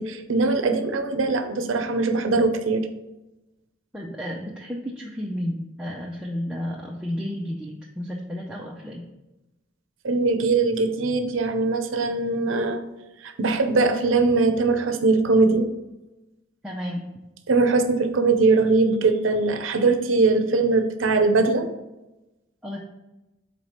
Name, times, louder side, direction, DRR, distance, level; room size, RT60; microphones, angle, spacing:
voice 1, 0.0-2.9 10.0-12.8 13.2-15.7 17.5-21.7, right 3 dB, 80° right, 8 dB, 0.6 m, -21 dB
voice 2, 3.9-9.0 16.6-17.1 22.6-22.8, equal, 5° right, -3 dB, 0.5 m, -32 dB
4.7 x 4.1 x 5.6 m, 1.0 s
head